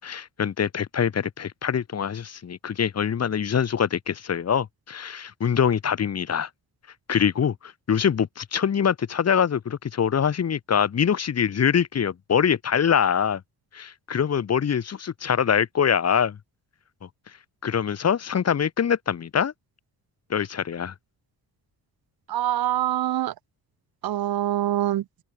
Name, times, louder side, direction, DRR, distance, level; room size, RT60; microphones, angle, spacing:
voice 1, 0.0-6.5 7.1-13.4 13.7-16.4 17.6-19.5 20.3-20.9, left 7 dB, 45° left, 2.7 m, -24 dB
voice 2, 22.3-23.3 24.0-25.0, right 13 dB, 80° right, 1.4 m, -24 dB
wide cardioid pair, 155°, 36 cm